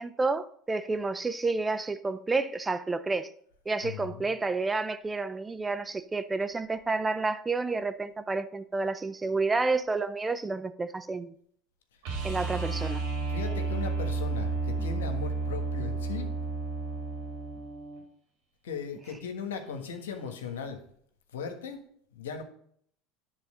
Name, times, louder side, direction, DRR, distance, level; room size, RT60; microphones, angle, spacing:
voice 1, 0.0-3.3 3.7-11.3 12.2-13.0, right 3 dB, 15° right, 0.5 m, -30 dB
voice 2, 3.8-4.3 13.1-16.3 18.6-20.8 21.3-21.8 22.1-22.4, left 6 dB, 90° left, 1.4 m, -38 dB
sound 1, 12.0-18.0 20.5-20.6, right 3 dB, 75° right, 3.2 m, -32 dB
10.0 x 4.0 x 6.6 m
hypercardioid pair, 90°, 0 cm